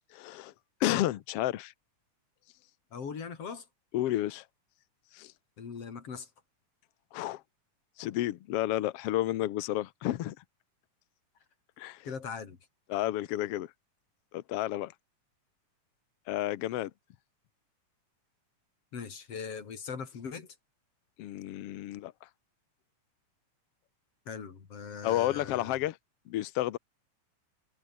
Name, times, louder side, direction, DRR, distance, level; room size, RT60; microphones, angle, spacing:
voice 1, 0.1-0.5 0.8-1.7 3.9-4.4 5.1-5.3 7.1-7.4 8.0-10.4 11.8-12.1 12.9-13.7 14.3-14.9 16.3-16.9 21.2-22.1 25.0-26.0 26.3-26.8, left 14 dB, 75° left, 1.4 m, -31 dB
voice 2, 2.9-3.7 5.6-6.3 12.1-12.6 18.9-20.5 24.3-25.8, left 6 dB, 45° left, 4.0 m, -40 dB
omnidirectional pair, 3.7 m